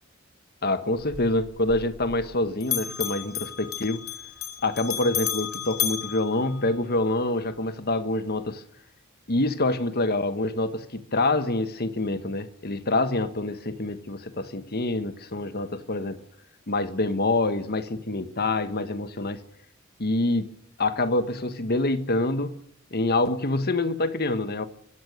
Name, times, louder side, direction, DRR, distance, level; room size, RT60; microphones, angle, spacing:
voice 1, 0.6-4.0 4.6-8.6 9.3-16.2 16.7-19.4 20.0-20.5 20.8-22.6 22.9-24.7, left 2 dB, 50° left, 1.4 m, -26 dB
Bell, 1.0-2.4 2.6-7.1, left 10 dB, 80° left, 2.8 m, -33 dB
24.5 x 16.0 x 6.6 m
head